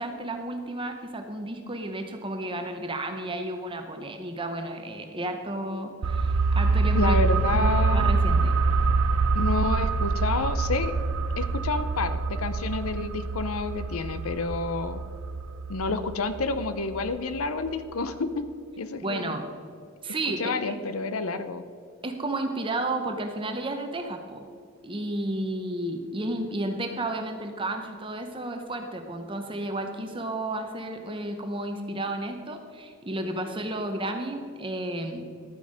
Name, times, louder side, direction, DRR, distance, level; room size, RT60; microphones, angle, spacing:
voice 1, 0.0-7.2 7.5-8.6 19.0-19.4 20.0-20.8 22.0-24.4 24.8-35.2, right 1 dB, 25° right, 5 dB, 0.8 m, -32 dB
sound 1, 6.0-17.4 17.7-17.8, right 4 dB, 80° right, 0.5 m, -25 dB
voice 2, 6.9-8.1 9.3-10.9 11.4-15.0 15.7-18.5 18.8-19.4 20.4-21.6, left 3 dB, 80° left, 11 dB, 0.7 m, -29 dB
12.5 x 9.1 x 5.1 m, 2.2 s
head